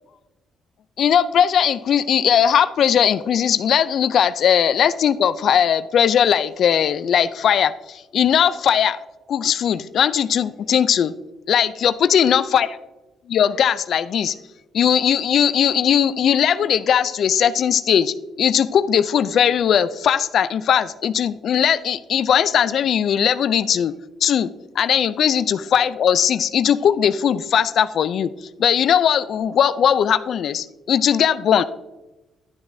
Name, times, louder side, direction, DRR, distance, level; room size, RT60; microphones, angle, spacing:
voice 1, 1.0-9.0 9.3-11.1 11.5-12.7 13.3-14.4 14.7-23.9 24.2-24.5 24.8-28.3 28.6-31.6, left 8 dB, 65° left, 15 dB, 0.3 m, -19 dB
11.5 x 7.0 x 2.6 m, 1.1 s
cardioid pair, 90°, 0 cm